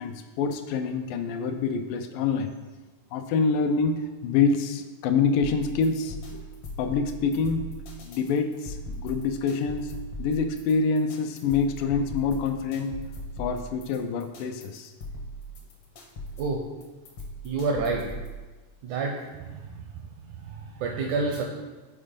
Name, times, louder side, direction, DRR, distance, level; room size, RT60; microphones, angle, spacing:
voice 1, 0.0-2.5 3.1-6.4 6.8-9.9 10.2-13.0 13.4-14.9, left 5 dB, 80° left, 7 dB, 2.1 m, -26 dB
sound 1, 5.4-18.4, equal, 65° left, 1.5 m, -39 dB
voice 2, 17.4-18.1 18.8-19.8 20.3-21.4, right 4 dB, 80° right, 1 dB, 1.8 m, -29 dB
7.4 x 4.4 x 5.1 m, 1.2 s
omnidirectional pair, 4.0 m